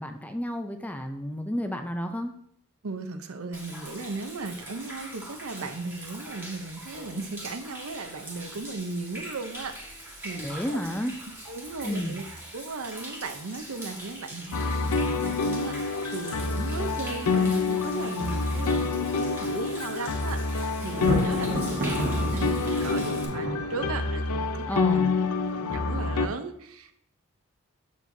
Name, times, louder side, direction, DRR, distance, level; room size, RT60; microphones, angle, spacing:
voice 1, 0.0-2.3 10.4-11.1 11.8-12.2 24.7-25.1, equal, 5° left, 6 dB, 0.5 m, -31 dB
voice 2, 2.8-10.8 11.5-12.2 12.5-24.6 24.9-25.0 25.5-27.0, right 3 dB, 70° right, 8 dB, 0.7 m, -36 dB
Human voice / Rain / Stream, 3.5-23.2, right 1 dB, 10° right, 1.6 m, -42 dB
sound 1, 14.5-26.3, left 4 dB, 85° left, 0.5 m, -27 dB
Thunder, 20.9-24.2, right 1 dB, 50° right, 1.0 m, -31 dB
7.5 x 7.3 x 2.7 m, 0.69 s
head